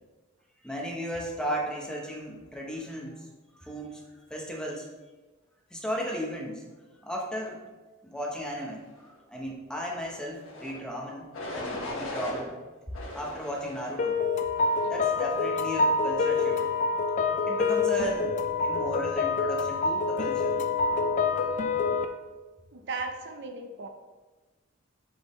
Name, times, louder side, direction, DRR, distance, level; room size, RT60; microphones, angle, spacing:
voice 1, 0.6-3.3 3.6-4.9 5.7-6.6 7.0-7.6 8.0-12.5 13.1-14.2 14.8-16.7 17.4-20.6, equal, 5° left, -1 dB, 1.0 m, -35 dB
sound 1, 10.4-10.8 11.3-12.4 12.9-14.0 14.5-15.0, left 2 dB, 70° left, 1.5 m, -37 dB
sound 2, 14.0-22.1, left 4 dB, 35° left, 0.4 m, -26 dB
voice 2, 22.7-23.9, right 3 dB, 60° right, 5 dB, 0.6 m, -36 dB
7.8 x 4.9 x 3.2 m, 1.2 s
head